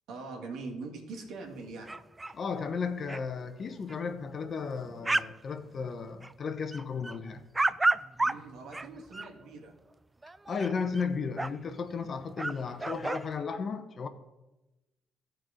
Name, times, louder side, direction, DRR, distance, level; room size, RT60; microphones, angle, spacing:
voice 1, 0.1-2.0 8.2-9.7, right 3 dB, 75° right, 2.0 m, -42 dB
sound 1, 1.9-2.3 2.7-2.8 3.0-3.2 3.9-4.0 4.4-5.4 5.6-6.4 6.7-9.3 10.2-11.1 11.4-11.5 12.1-12.2 12.4-13.3, right 2 dB, 20° right, 0.4 m, -32 dB
voice 2, 2.3-7.4 10.5-14.1, left 5 dB, 50° left, 1.0 m, -34 dB
13.5 x 4.6 x 5.1 m
supercardioid pair, 60°, 0 cm